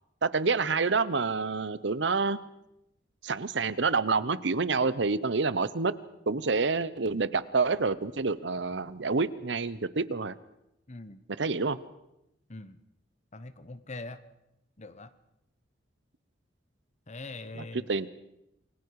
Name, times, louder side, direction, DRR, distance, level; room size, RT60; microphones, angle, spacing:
voice 1, 0.2-2.4 3.2-5.9 6.3-10.3 11.4-11.8 17.6-18.1, right 4 dB, 70° right, 16 dB, 0.9 m, -28 dB
voice 2, 10.9-11.2 12.5-12.8 13.3-14.2 14.8-15.1 17.1-17.9, left 2 dB, 40° left, 13 dB, 1.2 m, -42 dB
28.5 x 21.5 x 4.8 m, 0.84 s
head